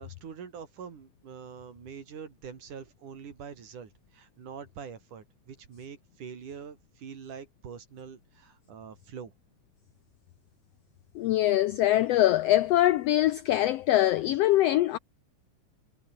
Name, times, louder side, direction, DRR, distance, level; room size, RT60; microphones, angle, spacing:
voice 1, 0.0-9.3 14.3-14.4, right 7 dB, 80° right, 4.8 m, -44 dB
voice 2, 11.1-15.0, left 14 dB, 90° left, 1.4 m, -23 dB
omnidirectional pair, 3.6 m